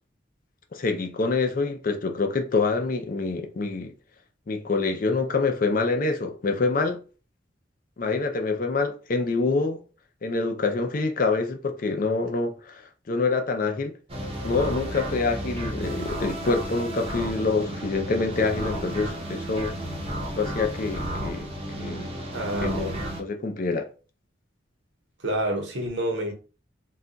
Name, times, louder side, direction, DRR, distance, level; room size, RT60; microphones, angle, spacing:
voice 1, 0.7-3.9 4.5-7.0 8.0-9.8 10.2-12.8 13.1-13.9 14.4-19.7 20.4-21.5 21.8-22.1 22.6-23.9, left 3 dB, 45° left, 0.4 m, -26 dB
sound 1, 14.1-23.2, right 1 dB, 30° right, 0.7 m, -33 dB
voice 2, 22.3-22.9 25.2-26.3, right 1 dB, 65° right, 0.9 m, -28 dB
2.3 x 2.2 x 3.8 m
head